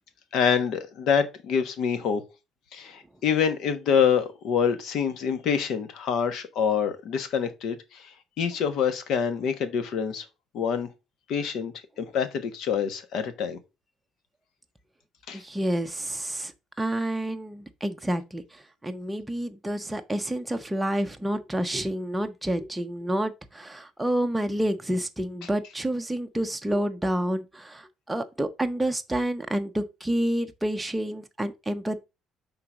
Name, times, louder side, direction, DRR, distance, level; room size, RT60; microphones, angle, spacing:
voice 1, 0.3-2.2 2.7-10.2 10.5-10.9 11.3-13.6 15.3-15.4 25.4-25.5, left 7 dB, 65° left, 1.1 m, -26 dB
voice 2, 15.3-16.5 16.8-32.0, right 1 dB, 5° right, 0.7 m, -29 dB
5.8 x 3.8 x 4.8 m
cardioid pair, 140°, 0 cm